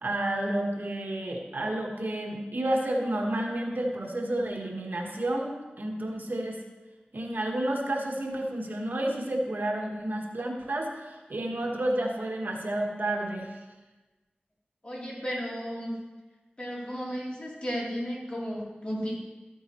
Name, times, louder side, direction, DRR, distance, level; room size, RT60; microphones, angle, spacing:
voice 1, 0.0-6.6 7.1-13.6, right 1 dB, 65° right, 0 dB, 1.4 m, -30 dB
voice 2, 14.8-16.0 16.6-19.2, equal, 35° left, -6 dB, 3.1 m, -34 dB
13.5 x 8.9 x 3.0 m, 1.2 s
wide cardioid pair, 75°, 3 cm